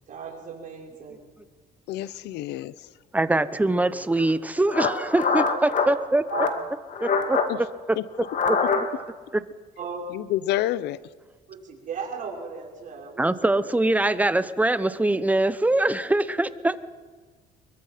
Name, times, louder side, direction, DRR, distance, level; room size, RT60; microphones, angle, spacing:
voice 1, 0.1-1.2 3.5-4.1 6.3-6.5 9.8-10.0 11.5-13.3, right 6 dB, 50° right, 0 dB, 5.3 m, -37 dB
voice 2, 1.9-2.7 7.5-7.6 8.0-8.1 10.1-11.0, left 14 dB, 85° left, 18 dB, 0.8 m, -28 dB
voice 3, 3.1-6.2 7.0-8.0 8.5-8.9 9.3-9.4 13.2-16.9, right 2 dB, 10° right, 13 dB, 1.0 m, -23 dB
sound 1, 4.2-4.3 4.7-5.9 6.3-6.6 6.9-7.5 8.2-9.1, left 5 dB, 50° left, 2.4 m, -24 dB
24.5 x 22.5 x 5.9 m, 1.4 s
cardioid pair, 110°, 17 cm